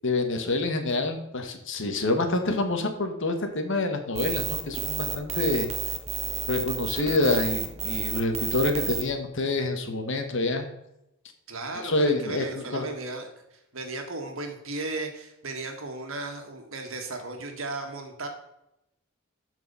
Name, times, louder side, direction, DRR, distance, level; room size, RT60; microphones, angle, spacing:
voice 1, 0.0-5.7 6.5-10.7 11.8-12.8, left 2 dB, 60° left, 6 dB, 1.4 m, -27 dB
sound 1, 4.2-9.0, right 7 dB, 30° right, 1.0 m, -31 dB
voice 2, 11.5-13.3 13.7-18.3, right 2 dB, 65° right, 4 dB, 1.7 m, -35 dB
13.0 x 4.7 x 5.5 m, 0.86 s
head